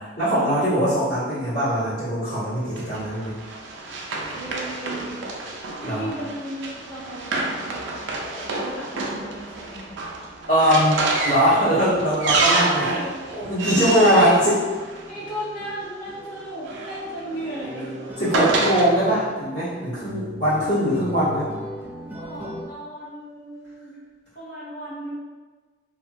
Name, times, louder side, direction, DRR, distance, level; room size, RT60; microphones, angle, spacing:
voice 1, 0.0-3.3 5.8-6.1 10.5-12.9 13.3-14.6 18.2-21.5, equal, 75° left, -17 dB, 1.3 m, -21 dB
Run, 2.8-15.4 16.4-18.9, right 3 dB, 85° right, 0.4 m, -28 dB
voice 2, 4.3-5.2 5.8-10.0 12.6-14.6 15.0-17.9 22.1-24.0 24.3-25.1, right 1 dB, 50° left, -8 dB, 1.1 m, -35 dB
sound 1, 13.2-13.4 13.6-22.7, equal, 10° right, 0.4 m, -39 dB
2.7 x 2.4 x 2.6 m, 1.4 s
head